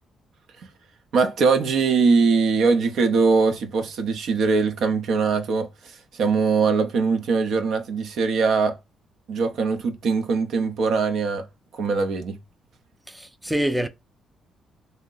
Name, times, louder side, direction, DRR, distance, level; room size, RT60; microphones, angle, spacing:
voice 1, 1.1-8.8 9.3-11.5 11.7-12.4, right 4 dB, 70° right, 0.6 m, -22 dB
voice 2, 13.1-13.9, right 1 dB, 5° right, 0.4 m, -25 dB
2.7 x 2.0 x 3.8 m
cardioid pair, 90°, 0 cm